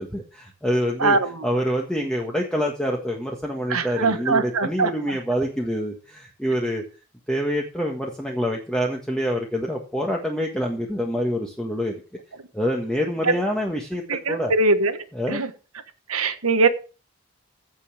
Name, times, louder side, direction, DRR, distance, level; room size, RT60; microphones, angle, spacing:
voice 1, 0.0-1.2 1.4-6.8 7.3-11.9 12.5-14.0 14.3-14.5 15.1-15.4, equal, 5° left, 1.5 m, -26 dB
voice 2, 1.0-1.5 3.7-5.2 13.2-13.3 14.1-15.0 15.3-15.5 16.1-16.7, right 3 dB, 80° right, 1.4 m, -22 dB
15.5 x 5.5 x 7.0 m
head